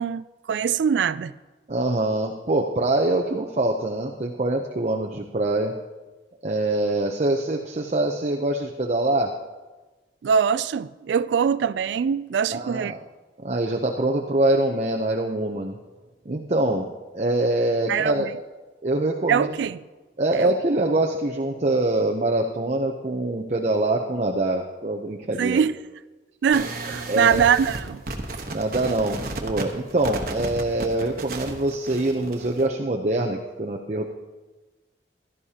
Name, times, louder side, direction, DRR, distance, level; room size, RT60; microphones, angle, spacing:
voice 1, 0.0-1.3 10.2-12.9 17.9-18.3 19.3-19.8 20.3-20.5 25.4-25.8 26.4-28.0, right 7 dB, 85° right, 0.3 m, -23 dB
voice 2, 1.7-5.8 6.4-9.3 12.5-13.0 13.4-15.8 16.3-18.3 18.8-19.5 20.2-25.6 27.1-27.4 28.5-34.0, right 2 dB, 40° right, 0.7 m, -24 dB
sound 1, 26.5-32.7, right 2 dB, 55° right, 1.2 m, -33 dB
16.0 x 12.5 x 2.9 m
head